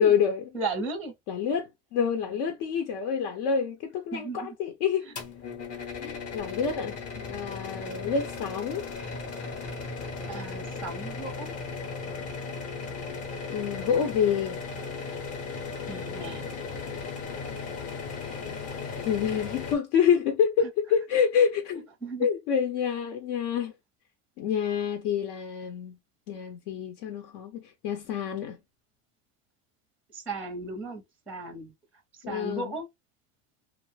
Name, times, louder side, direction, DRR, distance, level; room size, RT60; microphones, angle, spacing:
voice 1, 0.0-0.4 1.3-5.1 6.0-8.8 13.5-14.6 18.5-18.6 19.1-21.9 22.2-23.7 24.4-26.0 26.3-28.6 32.2-32.7, left 7 dB, 70° left, 0.8 m, -27 dB
voice 2, 0.5-1.1 4.1-4.5 5.7-5.9 9.4-9.5 10.3-11.5 15.9-16.5 22.0-22.3 30.1-31.7 32.3-32.9, right 3 dB, 5° right, 0.5 m, -35 dB
sound 1, 5.2-19.8, left 4 dB, 35° left, 0.8 m, -36 dB
2.5 x 2.0 x 3.1 m
supercardioid pair, 135°, 41 cm